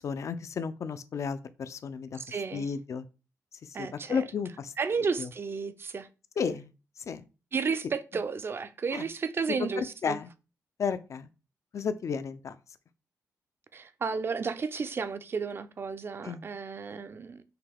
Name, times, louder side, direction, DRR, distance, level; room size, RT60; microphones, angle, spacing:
voice 1, 0.0-2.2 2.5-3.1 3.6-4.7 5.2-5.3 6.4-6.7 7.0-7.2 8.9-9.1 9.6-10.3 10.8-11.3 11.7-12.6 16.2-16.4, left 6 dB, 60° left, 0.4 m, -33 dB
voice 2, 2.2-2.7 3.7-4.2 4.8-6.1 7.5-10.2 13.7-17.4, right 5 dB, 40° right, 0.4 m, -33 dB
5.7 x 2.3 x 3.4 m
cardioid pair, 95°, 6 cm